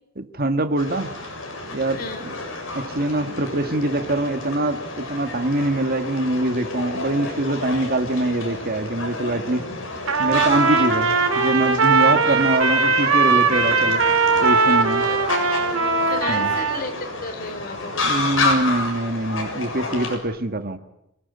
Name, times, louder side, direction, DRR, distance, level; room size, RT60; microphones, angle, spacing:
voice 1, 0.2-1.1 1.7-2.3 2.7-9.6 10.2-14.0 14.4-15.1 16.3-16.5 18.0-20.8, right 1 dB, 45° right, 8 dB, 1.8 m, -24 dB
sound 1, 0.8-20.2, left 2 dB, 65° left, 7.6 m, -30 dB
voice 2, 2.0-2.3 12.2-12.4 15.0-15.2 15.6-15.7 16.1-18.7, left 3 dB, 45° left, 8 dB, 3.8 m, -34 dB
Trumpet, 10.1-16.8, right 4 dB, 75° right, 3.0 m, -19 dB
26.5 x 18.5 x 9.8 m, 0.81 s
head